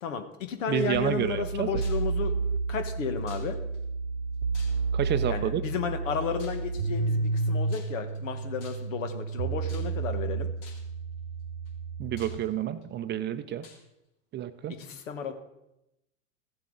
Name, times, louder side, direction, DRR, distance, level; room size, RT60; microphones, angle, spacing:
voice 1, 0.0-2.3 2.7-3.6 5.3-10.5 14.7-15.3, left 6 dB, 75° left, 8 dB, 1.4 m, -33 dB
voice 2, 0.7-1.7 4.9-5.6 12.0-13.6 14.3-14.8, right 11 dB, 30° right, 11 dB, 0.5 m, -29 dB
sound 1, 0.9-12.4, right 4 dB, 90° right, 0.6 m, -31 dB
sound 2, 1.8-2.1 3.3-3.8 4.5-5.1 6.4-6.7 7.7-8.2 8.6-9.0 9.7-10.1 10.6-11.0 11.6-11.7 12.2-12.8 13.6-13.8, left 4 dB, 60° left, 2.7 m, -51 dB
14.5 x 7.5 x 3.8 m, 0.89 s
hypercardioid pair, 100°, 38 cm